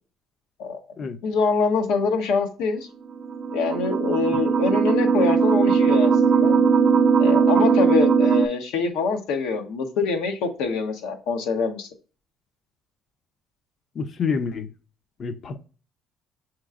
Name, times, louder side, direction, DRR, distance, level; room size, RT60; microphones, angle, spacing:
voice 1, 1.2-2.9 3.5-6.6 7.2-11.9, left 5 dB, 90° left, 0.9 m, -25 dB
sound 1, 3.2-8.5, right 5 dB, 35° right, 0.3 m, -19 dB
voice 2, 13.9-14.7 15.2-15.6, left 5 dB, 40° left, 0.5 m, -28 dB
6.5 x 3.0 x 2.4 m
cardioid pair, 135°, 0 cm